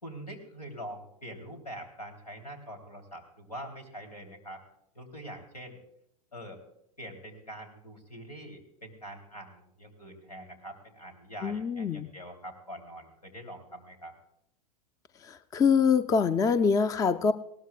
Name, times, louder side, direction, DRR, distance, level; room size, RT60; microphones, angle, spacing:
voice 1, 0.0-4.6 4.9-5.8 6.3-6.6 7.0-14.1, equal, 80° left, 4 dB, 3.3 m, -44 dB
voice 2, 11.4-12.1 15.2-17.3, left 6 dB, 15° left, 15 dB, 0.5 m, -25 dB
20.5 x 17.5 x 2.4 m, 0.78 s
figure-of-eight pair, 90°, 20 cm